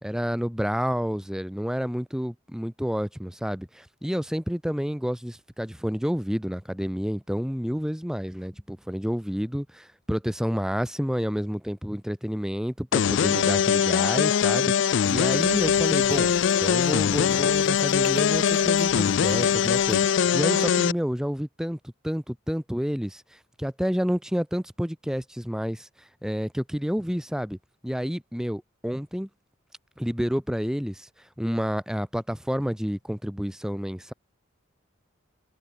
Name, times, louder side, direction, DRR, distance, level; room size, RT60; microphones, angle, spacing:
voice 1, 0.0-9.6 10.1-16.3 16.6-23.2 23.6-25.9 26.2-27.6 27.8-29.3 30.0-31.1 31.4-34.1, equal, 5° right, 0.9 m, -29 dB
sound 1, 12.9-20.9, left 7 dB, 60° left, 0.4 m, -22 dB
sound 2, 15.0-20.1, left 7 dB, 85° left, 4.8 m, -41 dB
head